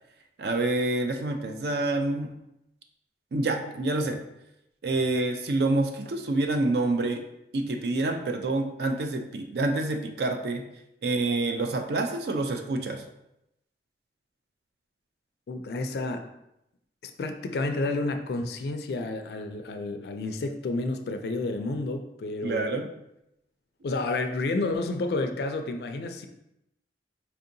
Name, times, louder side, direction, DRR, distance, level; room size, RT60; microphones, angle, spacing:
voice 1, 0.4-2.3 3.3-4.2 4.8-7.2 7.5-10.7 11.0-13.0 22.4-22.9, right 2 dB, 60° right, 5 dB, 0.4 m, -27 dB
voice 2, 15.5-16.3 17.0-22.7 23.8-26.3, left 2 dB, 60° left, 6 dB, 0.4 m, -30 dB
4.3 x 2.7 x 2.6 m, 0.84 s
head